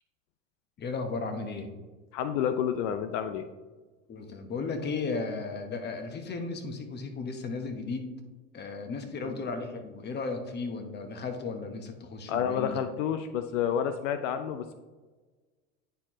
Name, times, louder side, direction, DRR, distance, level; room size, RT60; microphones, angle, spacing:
voice 1, 0.8-1.7 4.1-8.1 8.5-12.8, left 4 dB, 25° left, 6 dB, 1.0 m, -35 dB
voice 2, 2.1-3.5 9.2-9.4 12.3-14.7, left 8 dB, 70° left, 9 dB, 0.6 m, -30 dB
9.3 x 4.5 x 3.0 m, 1.3 s
hypercardioid pair, 100°, 39 cm